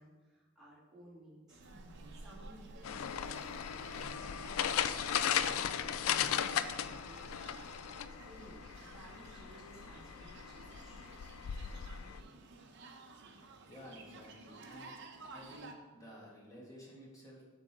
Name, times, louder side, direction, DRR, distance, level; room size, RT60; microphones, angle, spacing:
voice 1, 0.0-1.6 2.1-3.8 4.1-5.4 5.8-11.2, equal, ahead, -9 dB, 2.2 m, -58 dB
sound 1, 1.5-15.7, right 3 dB, 55° right, 0.8 m, -55 dB
Buzz, 1.6-7.8, right 2 dB, 70° right, 0.5 m, -54 dB
sound 2, 2.8-12.2, left 9 dB, 70° left, 0.3 m, -37 dB
voice 2, 13.7-14.9 15.3-17.4, equal, 15° left, -4 dB, 1.9 m, -53 dB
7.6 x 6.5 x 3.7 m, 1.4 s
head